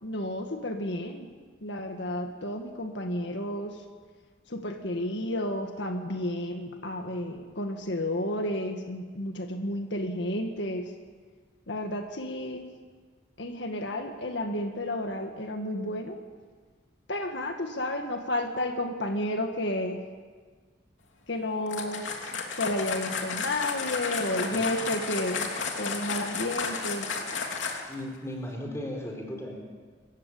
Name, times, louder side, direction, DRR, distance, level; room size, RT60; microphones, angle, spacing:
voice 1, 0.0-1.3 1.6-3.8 4.5-10.9 11.7-12.7 13.4-16.2 17.1-20.0 21.3-22.0 22.6-25.5 25.8-27.1, left 1 dB, 70° left, 4 dB, 1.8 m, -31 dB
sound 1, 21.7-28.0, left 5 dB, 85° left, 3.0 m, -33 dB
voice 2, 24.5-24.9 27.9-29.6, left 1 dB, 15° left, 1 dB, 4.2 m, -36 dB
27.0 x 15.5 x 8.5 m, 1.5 s
head